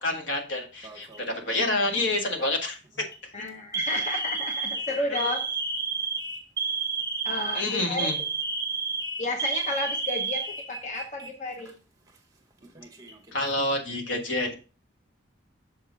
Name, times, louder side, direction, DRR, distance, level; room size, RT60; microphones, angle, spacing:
voice 1, 0.0-2.8 3.2-3.3 5.2-5.3 7.5-8.1 13.3-14.5, left 2 dB, 75° left, 3 dB, 1.5 m, -28 dB
Alarm, 0.8-1.3 2.2-2.5 3.0-3.2 3.7-11.3 11.6-11.7 12.6-13.3, right 4 dB, 20° right, 1.0 m, -31 dB
voice 2, 3.3-5.4 7.2-8.1 9.2-11.7, left 2 dB, 40° left, 3 dB, 0.9 m, -32 dB
6.6 x 5.5 x 3.7 m, 0.34 s
head